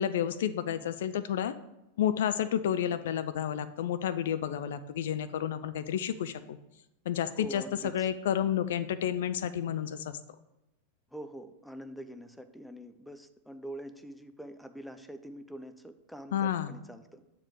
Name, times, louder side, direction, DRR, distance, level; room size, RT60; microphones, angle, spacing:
voice 1, 0.0-1.5 2.0-6.6 7.1-10.2 16.3-16.7, left 9 dB, 60° left, 13 dB, 0.3 m, -30 dB
voice 2, 7.3-8.1 11.1-17.2, right 1 dB, ahead, 9 dB, 0.5 m, -45 dB
7.3 x 4.6 x 4.9 m, 0.93 s
figure-of-eight pair, 90°, 0 cm